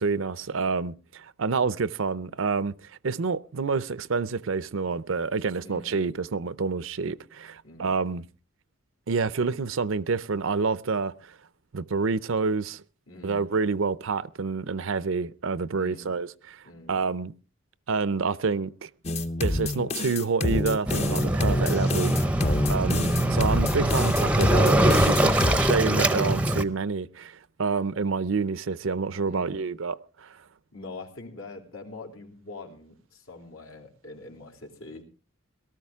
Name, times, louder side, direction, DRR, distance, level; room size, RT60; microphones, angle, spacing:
voice 1, 0.0-8.2 9.1-11.4 11.7-12.8 13.2-16.6 16.9-17.3 17.9-18.9 19.4-22.1 22.7-30.3, right 4 dB, 70° right, 0.6 m, -28 dB
voice 2, 5.6-6.0 7.6-8.0 13.1-13.5 15.8-16.2 16.6-17.0 22.2-22.6 29.3-29.6 30.7-35.0, left 2 dB, 80° left, 3.1 m, -44 dB
sound 1, 19.0-25.6, left 2 dB, 30° left, 0.7 m, -28 dB
Waves surf, 20.9-26.6, right 1 dB, 5° right, 0.6 m, -23 dB
18.0 x 13.0 x 3.6 m
head